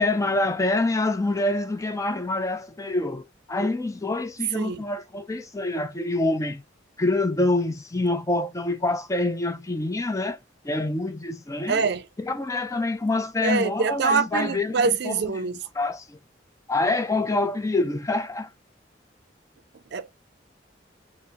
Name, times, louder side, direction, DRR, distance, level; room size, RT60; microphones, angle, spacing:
voice 1, 0.0-6.6 7.0-10.4 10.6-11.8 12.2-15.2 15.8-16.2 16.7-18.5, left 2 dB, 20° left, 0.4 m, -26 dB
voice 2, 4.5-4.8 11.7-12.1 13.4-15.6 19.7-20.1, right 5 dB, 65° right, 0.5 m, -25 dB
4.3 x 2.0 x 3.5 m
head